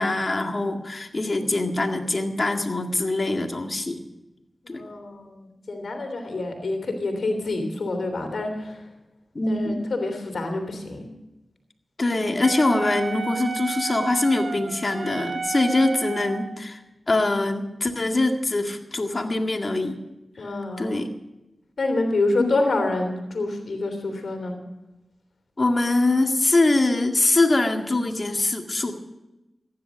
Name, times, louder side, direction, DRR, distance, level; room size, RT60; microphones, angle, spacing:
voice 1, 0.0-4.0 4.7-4.8 9.4-9.8 12.0-16.8 17.1-20.0 20.8-21.1 22.4-22.5 25.6-28.9, left 2 dB, 50° left, 4 dB, 1.9 m, -23 dB
voice 2, 4.6-8.8 9.5-11.1 20.4-20.9 21.8-24.5, left 2 dB, 75° left, 5 dB, 3.1 m, -27 dB
Wind instrument woodwind instrument, 12.4-16.6, right 5 dB, 70° right, 0.6 m, -32 dB
15.0 x 10.5 x 6.3 m, 1.0 s
cardioid pair, 40°, 0 cm